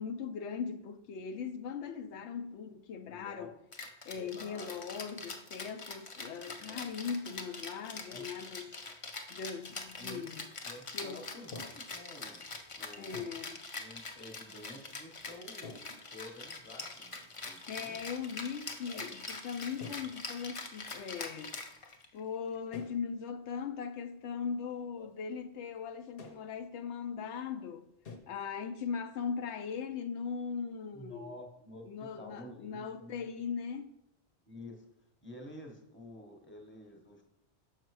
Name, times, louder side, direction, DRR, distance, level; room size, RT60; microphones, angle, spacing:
voice 1, 0.0-3.5 4.1-8.8 9.3-10.5 10.9-11.2 13.0-13.6 17.7-21.6 22.1-27.9 28.3-31.4 31.9-33.9, left 6 dB, 80° left, 0.9 m, -39 dB
voice 2, 3.1-3.5 4.1-4.8 6.4-6.8 8.1-8.2 10.0-10.3 10.6-12.4 12.8-13.4 13.8-18.0 18.9-19.0 25.0-25.1 30.9-31.8 32.2-33.3 34.4-34.8 35.2-37.2, left 1 dB, 10° left, 0.9 m, -50 dB
Rattle (instrument), 3.7-22.2, left 3 dB, 35° left, 0.6 m, -44 dB
sound 1, 11.5-11.9 13.1-13.5 15.6-16.0 17.1-17.2 17.6-18.0 18.3-18.4 18.8-19.2 19.8-20.1 22.7-23.1 23.5-23.6 24.2-24.3 26.2-26.5 28.0-28.2, left 4 dB, 55° left, 1.0 m, -49 dB
6.5 x 5.8 x 4.6 m
omnidirectional pair, 1.1 m